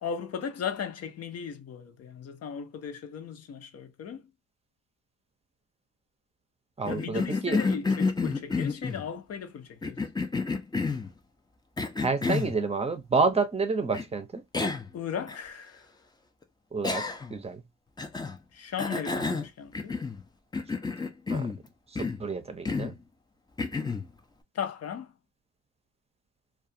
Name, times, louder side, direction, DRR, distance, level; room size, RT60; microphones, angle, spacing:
voice 1, 0.0-4.3 6.8-10.0 14.9-15.9 18.5-20.0 24.5-25.1, left 7 dB, 55° left, 0.7 m, -36 dB
voice 2, 6.8-7.6 12.0-14.4 16.7-17.6 21.3-21.5 21.9-23.0, right 4 dB, 20° right, 0.7 m, -29 dB
Cough, 6.9-9.0 9.8-11.1 11.8-12.6 13.9-14.0 14.5-14.9 15.3-15.4 16.8-17.4 18.0-18.4 18.8-20.2 20.5-21.6 21.9-22.2 22.6-23.0 23.6-24.1, left 4 dB, 15° left, 0.5 m, -30 dB
2.4 x 2.3 x 2.6 m
cardioid pair, 90°, 30 cm